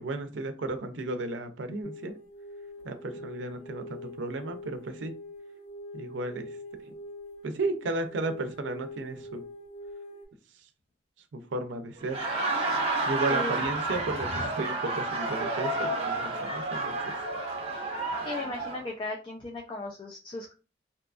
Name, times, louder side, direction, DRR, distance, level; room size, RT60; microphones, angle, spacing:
voice 1, 0.0-2.1 2.8-5.1 5.9-6.5 6.9-7.0 7.4-9.4 11.3-12.2 13.0-17.1, right 2 dB, 75° right, 8 dB, 0.5 m, -34 dB
sound 1, 1.8-10.2, equal, 85° left, 1.1 m, -44 dB
Laughter, 12.0-18.8, right 2 dB, 35° right, 0.6 m, -30 dB
voice 2, 18.2-20.5, left 2 dB, 25° left, 0 dB, 0.4 m, -36 dB
2.7 x 2.3 x 2.3 m, 0.33 s
head